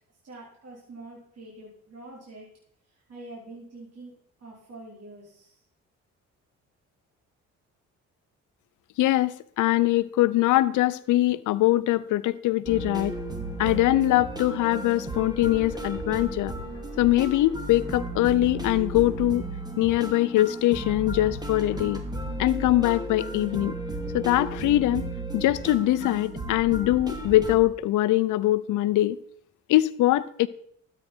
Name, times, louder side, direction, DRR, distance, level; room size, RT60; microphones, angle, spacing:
voice 1, 0.2-2.5 3.1-5.6, right 2 dB, 55° right, 4.6 m, -45 dB
voice 2, 9.0-13.1 13.6-16.5 17.0-19.4 19.8-22.0 22.4-23.7 24.1-29.2 29.7-30.5, left 16 dB, 80° left, 0.6 m, -22 dB
ghost house, 12.7-27.6, right 1 dB, 15° right, 2.5 m, -34 dB
13.0 x 8.9 x 4.4 m
cardioid pair, 90°, 30 cm